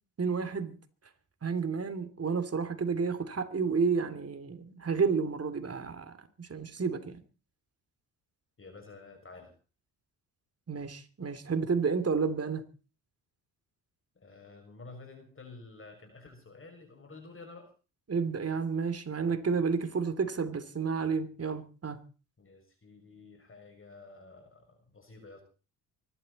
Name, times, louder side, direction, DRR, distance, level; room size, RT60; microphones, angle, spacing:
voice 1, 0.2-0.8 1.4-7.2 10.7-12.7 18.1-22.0, right 5 dB, 35° right, 3.0 m, -31 dB
voice 2, 8.6-9.5 14.1-17.7 22.4-25.4, left 3 dB, 30° left, 6.6 m, -50 dB
24.5 x 12.5 x 4.2 m
supercardioid pair, 65°, 41 cm